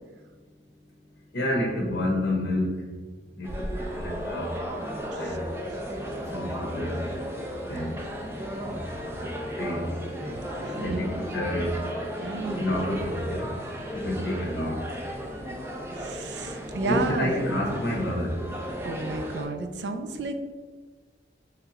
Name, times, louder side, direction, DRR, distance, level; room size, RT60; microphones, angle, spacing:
voice 1, 1.3-2.7 3.4-3.7 3.9-4.5 5.2-5.4 6.3-7.0 7.7-8.0 8.6-8.8 9.0-9.9 10.8-11.8 12.6-13.5 14.0-14.8 16.9-18.4, left 1 dB, 70° left, -2 dB, 0.6 m, -29 dB
sound 1, 3.4-19.5, equal, 15° right, 0.4 m, -34 dB
voice 2, 10.6-11.0 12.2-12.7 16.0-17.3 18.8-20.4, right 3 dB, 80° right, 7 dB, 0.4 m, -32 dB
3.2 x 2.9 x 3.6 m, 1.4 s
head